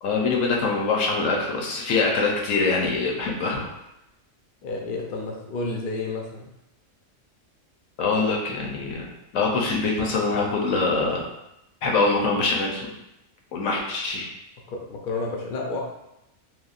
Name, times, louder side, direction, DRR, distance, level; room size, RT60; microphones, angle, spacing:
voice 1, 0.0-3.6 8.0-9.0 9.3-11.2 11.8-12.9 13.5-14.3, left 3 dB, 80° left, -1 dB, 1.0 m, -24 dB
voice 2, 4.6-6.5 14.7-15.8, left 3 dB, 60° left, 0 dB, 0.5 m, -30 dB
3.4 x 2.1 x 2.4 m, 0.88 s
omnidirectional pair, 1.3 m